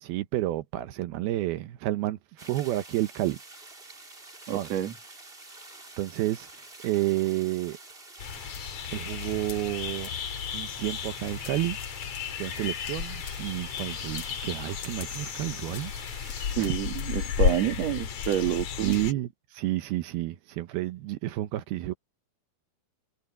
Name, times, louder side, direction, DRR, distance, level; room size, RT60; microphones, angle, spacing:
voice 1, 0.0-3.4 4.5-4.7 6.0-6.5 6.8-7.8 8.9-10.1 10.5-11.8 12.4-15.9 16.6-16.7 18.8-21.9, right 16 dB, 85° right, 2.9 m, -30 dB
sound 1, 2.4-16.6, right 2 dB, 15° right, 2.8 m, -48 dB
voice 2, 4.5-4.9 16.6-19.0, right 12 dB, 55° right, 2.4 m, -28 dB
sound 2, 8.2-19.1, left 8 dB, 55° left, 2.6 m, -33 dB
omnidirectional pair, 4.4 m